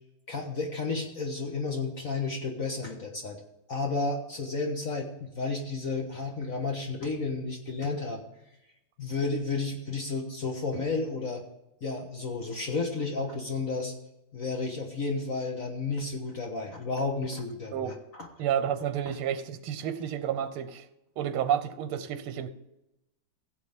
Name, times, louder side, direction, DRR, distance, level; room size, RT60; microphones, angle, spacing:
voice 1, 0.3-3.4 3.7-8.2 9.0-11.4 11.8-13.9 14.3-18.3, left 3 dB, 45° left, 2 dB, 1.4 m, -32 dB
voice 2, 18.4-20.9 21.2-22.5, right 9 dB, 85° right, 12 dB, 1.7 m, -30 dB
16.0 x 7.8 x 3.6 m, 0.89 s
omnidirectional pair, 2.4 m